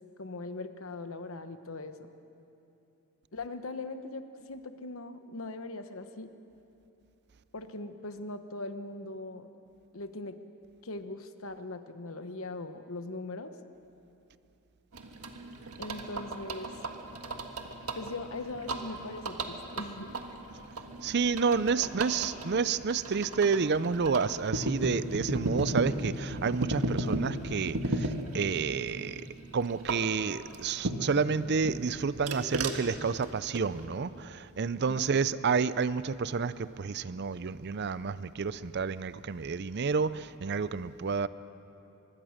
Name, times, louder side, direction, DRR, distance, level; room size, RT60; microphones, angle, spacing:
voice 1, 0.2-2.1 3.3-6.3 7.5-9.5 9.9-10.4 10.8-13.5 15.8-16.7 17.9-20.1 21.5-21.9 34.7-35.1, left 2 dB, 65° left, 9 dB, 1.1 m, -40 dB
sound 1, 14.9-31.2 31.6-33.9, right 2 dB, 85° right, 1.7 m, -36 dB
voice 2, 21.0-29.2 29.5-41.3, right 5 dB, 50° right, 16 dB, 0.5 m, -30 dB
24.5 x 21.5 x 6.5 m, 2.9 s
head